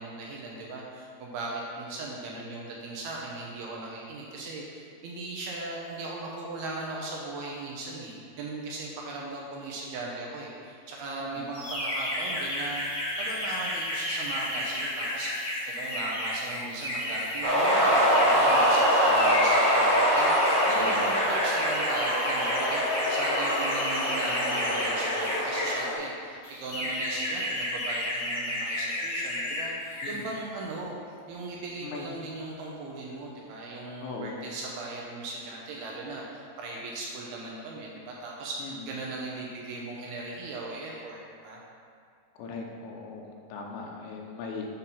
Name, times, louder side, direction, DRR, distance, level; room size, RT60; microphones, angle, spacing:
voice 1, 0.0-31.0 31.3-41.6, right 2 dB, 75° right, -3 dB, 2.5 m, -38 dB
voice 2, 11.2-11.5 18.3-18.7 20.8-21.1 30.0-30.3 31.8-32.1 34.0-34.5 38.6-38.9 42.4-44.7, left 4 dB, 85° left, 0 dB, 3.1 m, -39 dB
sound 1, 11.5-25.8 26.4-29.6 29.9-30.2, left 1 dB, 40° left, 2.1 m, -32 dB
sound 2, 17.4-25.9, equal, 50° right, 2.0 m, -24 dB
8.6 x 4.1 x 5.8 m, 2.2 s
omnidirectional pair, 5.0 m